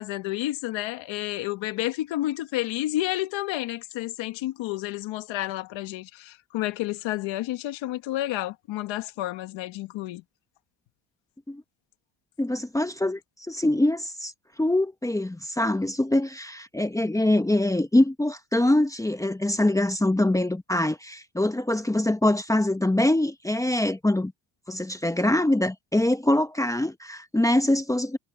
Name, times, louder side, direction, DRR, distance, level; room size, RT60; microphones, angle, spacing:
voice 1, 0.0-10.2, left 16 dB, 80° left, 1.4 m, -30 dB
voice 2, 12.4-13.2 13.5-14.3 14.6-24.3 24.7-28.2, left 1 dB, 5° left, 1.0 m, -24 dB
cardioid pair, 125°, 45 cm